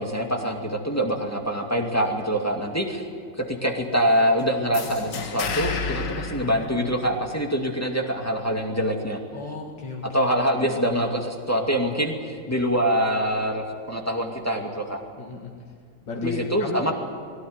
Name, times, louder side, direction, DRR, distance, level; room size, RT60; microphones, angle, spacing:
voice 1, 0.0-3.1 3.4-9.2 10.1-15.0 16.2-16.9, equal, 10° left, 1 dB, 2.3 m, -25 dB
sound 1, 4.7-7.5, left 5 dB, 90° left, 2.3 m, -31 dB
voice 2, 9.3-10.8 15.2-15.5 16.1-16.9, left 3 dB, 65° left, -1 dB, 2.7 m, -34 dB
22.0 x 17.5 x 9.7 m, 2.1 s
omnidirectional pair, 2.2 m